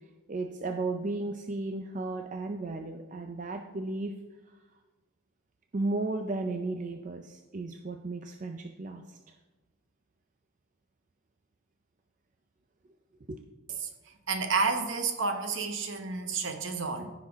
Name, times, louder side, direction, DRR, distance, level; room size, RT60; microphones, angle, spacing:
voice 1, 0.3-4.2 5.7-9.2 13.3-13.4, right 2 dB, 35° right, 5 dB, 0.4 m, -34 dB
voice 2, 14.3-17.1, right 4 dB, 60° right, 6 dB, 1.0 m, -30 dB
14.5 x 5.9 x 3.6 m, 1.2 s
head